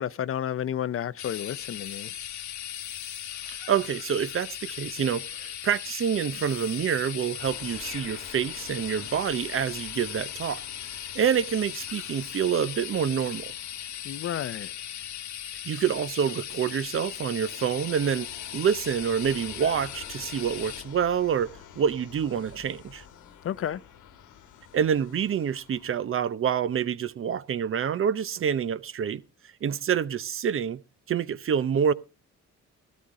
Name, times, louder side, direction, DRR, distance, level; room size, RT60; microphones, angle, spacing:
voice 1, 0.0-2.1 14.0-14.7 23.4-23.8, left 10 dB, 45° left, 0.6 m, -31 dB
sound 1, 1.2-20.8, left 11 dB, 70° left, 1.2 m, -38 dB
voice 2, 3.5-10.6 11.1-13.5 15.6-18.3 18.5-23.0 24.7-29.2 29.6-30.8 31.1-31.9, right 8 dB, 45° right, 0.7 m, -27 dB
sound 2, 7.4-26.0, left 9 dB, 90° left, 1.5 m, -50 dB
13.0 x 13.0 x 3.7 m
cardioid pair, 90°, 30 cm